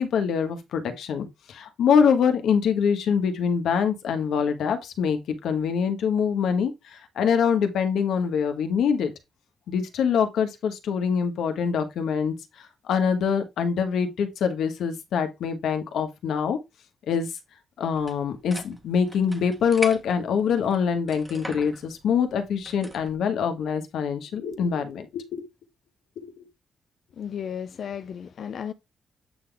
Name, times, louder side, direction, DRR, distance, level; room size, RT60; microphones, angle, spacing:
voice 1, 0.0-9.1 9.7-16.6 17.1-17.3 17.8-25.5 26.2-26.4, left 7 dB, 85° left, 1.4 m, -24 dB
sound 1, 17.9-23.1, right 1 dB, 10° right, 1.2 m, -41 dB
voice 2, 27.1-28.7, left 8 dB, 50° left, 0.5 m, -34 dB
8.5 x 4.0 x 3.4 m
wide cardioid pair, 175°, 0 cm